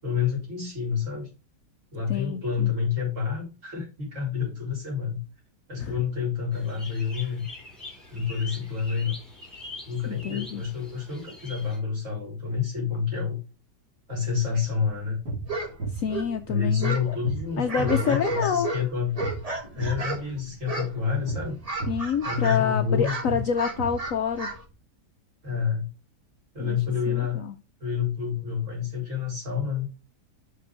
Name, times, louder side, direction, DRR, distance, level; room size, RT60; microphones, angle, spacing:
voice 1, 0.0-1.3 1.9-5.2 5.7-7.4 8.1-9.2 9.9-13.4 14.1-15.2 16.5-19.1 19.7-21.6 22.2-23.4 25.4-25.9 26.5-27.5 27.8-29.9, left 6 dB, 45° right, 4.3 m, -28 dB
voice 2, 2.1-2.7 5.8-5.9 10.1-10.6 15.9-17.2 17.6-18.7 21.9-24.5 26.6-26.8 27.1-27.6, left 7 dB, 65° left, 0.9 m, -27 dB
sound 1, 6.5-11.8, left 2 dB, ahead, 3.8 m, -43 dB
sound 2, 14.9-24.7, right 3 dB, 70° right, 3.6 m, -38 dB
sound 3, 15.5-15.7 16.0-17.1 17.5-20.3 20.7-21.2 21.4-22.6 22.9-24.6, right 2 dB, 20° right, 1.7 m, -33 dB
6.0 x 5.9 x 4.9 m
omnidirectional pair, 1.8 m